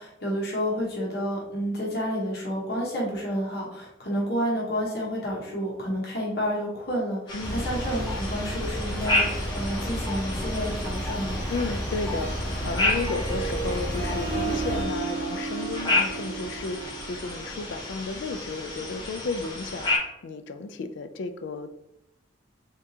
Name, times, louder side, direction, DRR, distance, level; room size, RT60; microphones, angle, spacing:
voice 1, 0.0-11.4, equal, 55° left, -4 dB, 1.1 m, -30 dB
voice 2, 7.3-7.7 11.5-21.7, left 3 dB, 70° left, 9 dB, 0.4 m, -33 dB
sound 1, 7.3-20.0, left 2 dB, 25° left, 0.9 m, -32 dB
sound 2, 7.4-14.8, equal, 5° left, 1.1 m, -31 dB
Harp, 12.1-17.6, right 4 dB, 35° right, 1.2 m, -34 dB
3.6 x 3.5 x 2.7 m, 0.83 s
head